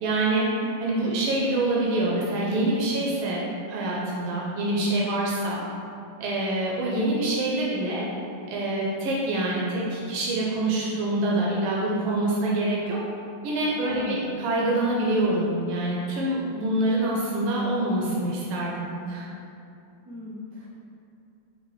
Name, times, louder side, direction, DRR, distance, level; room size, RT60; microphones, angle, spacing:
voice 1, 0.0-0.5 0.8-5.6 6.2-8.1 8.5-13.0 13.4-19.3, right 1 dB, 90° right, -4 dB, 1.4 m, -26 dB
voice 2, 13.8-14.4 20.0-20.7, left 2 dB, 60° right, -9 dB, 1.8 m, -39 dB
5.7 x 2.7 x 3.1 m, 2.6 s
omnidirectional pair, 2.2 m